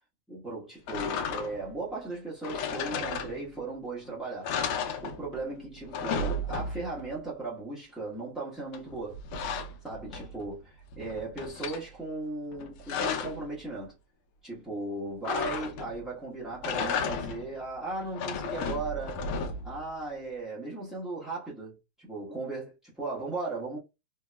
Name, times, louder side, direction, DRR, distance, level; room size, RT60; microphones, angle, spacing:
voice 1, 0.3-4.6 5.0-9.2 9.8-13.9 14.4-19.2 19.6-23.8, right 3 dB, ahead, 0.6 m, -37 dB
sound 1, 0.9-1.7 2.4-3.7 4.1-4.2 4.4-5.5 5.8-7.0 8.7-10.5 10.9-11.8 12.5-13.5 15.2-16.0 16.5-17.5 18.0-19.8, left 4 dB, 85° left, 1.5 m, -33 dB
3.5 x 2.9 x 2.2 m
omnidirectional pair, 2.3 m